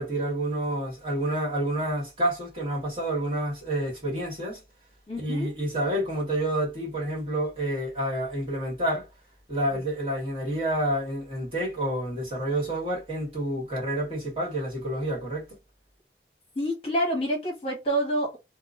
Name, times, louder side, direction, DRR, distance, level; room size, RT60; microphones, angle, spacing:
voice 1, 0.0-4.6 5.2-9.1 9.5-15.6, right 1 dB, 30° right, 1.7 m, -29 dB
voice 2, 5.1-5.5 9.7-9.8 16.5-18.4, equal, 35° left, 1.0 m, -28 dB
2.9 x 2.3 x 2.5 m
head